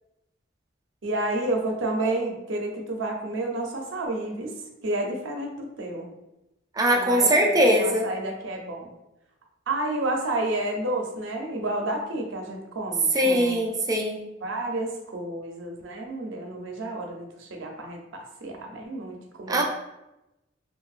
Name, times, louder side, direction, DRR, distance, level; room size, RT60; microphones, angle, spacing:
voice 1, 1.0-6.1 6.9-8.9 9.7-13.7 14.4-19.6, right 2 dB, 75° right, 2 dB, 0.5 m, -30 dB
voice 2, 6.8-8.1 13.1-14.3 19.5-19.6, equal, 20° right, 0 dB, 0.4 m, -21 dB
2.9 x 2.6 x 2.3 m, 0.94 s
head